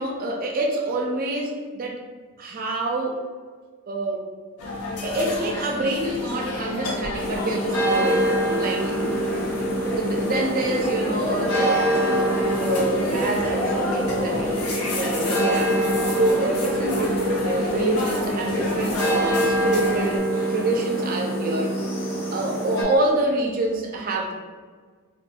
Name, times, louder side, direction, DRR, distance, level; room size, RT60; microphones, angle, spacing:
voice 1, 0.0-2.0 2.4-3.3 3.9-4.3 5.0-9.1 10.0-20.2 20.5-21.7 22.3-24.3, right 1 dB, 40° right, 1 dB, 0.4 m, -27 dB
sound 1, 4.6-20.2, left 2 dB, 85° left, 0.7 m, -30 dB
sound 2, 7.1-22.8, right 1 dB, 60° left, 1.0 m, -25 dB
2.6 x 2.3 x 4.0 m, 1.5 s
head